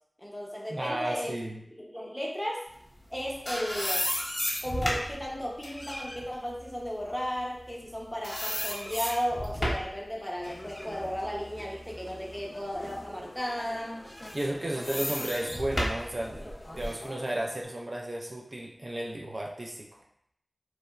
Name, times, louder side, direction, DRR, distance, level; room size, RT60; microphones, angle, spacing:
voice 1, 0.2-1.3 1.8-2.7 3.1-4.1 4.6-14.0, equal, 5° left, -3 dB, 0.7 m, -34 dB
voice 2, 0.7-1.6 14.3-20.0, right 1 dB, 50° right, -1 dB, 0.3 m, -34 dB
sound 1, 3.0-7.9 8.2-10.0 10.4-12.4 12.9-13.0 14.0-17.0, left 1 dB, 55° left, 0.7 m, -34 dB
sound 2, 10.4-17.6, left 1 dB, 35° left, 0.3 m, -46 dB
2.8 x 2.1 x 2.3 m, 0.72 s
wide cardioid pair, 40°, 0 cm